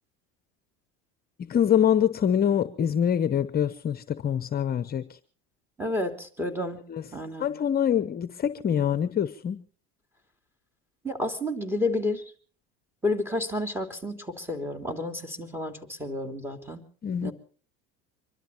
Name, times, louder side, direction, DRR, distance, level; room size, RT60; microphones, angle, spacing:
voice 1, 1.4-5.2 6.9-7.0 7.4-9.6 17.0-17.3, left 9 dB, 30° left, 0.9 m, -25 dB
voice 2, 5.8-6.8 7.1-7.5 11.0-12.3 13.0-16.8 17.2-17.3, left 2 dB, 10° right, 3.2 m, -30 dB
25.0 x 12.5 x 4.4 m
supercardioid pair, 110°, 30 cm